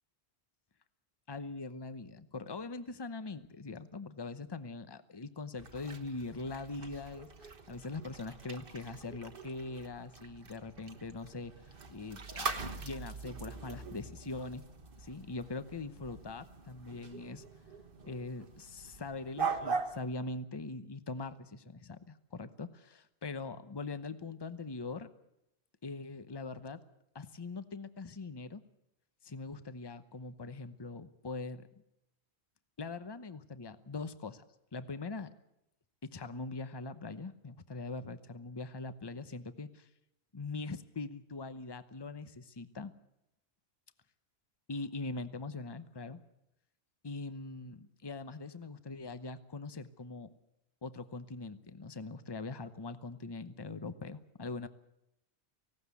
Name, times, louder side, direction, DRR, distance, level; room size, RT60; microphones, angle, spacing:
voice 1, 1.3-11.5 11.9-14.6 15.0-17.5 18.0-25.1 25.8-26.8 27.1-28.6 29.2-31.7 32.8-34.4 34.7-35.3 36.0-39.9 40.3-42.9 44.7-46.2 47.0-50.3 50.8-54.7, left 3 dB, 25° left, 12 dB, 0.8 m, -42 dB
sound 1, 5.6-20.0, right 5 dB, 55° right, 1.5 m, -42 dB
18.5 x 16.5 x 8.3 m, 0.83 s
omnidirectional pair, 1.1 m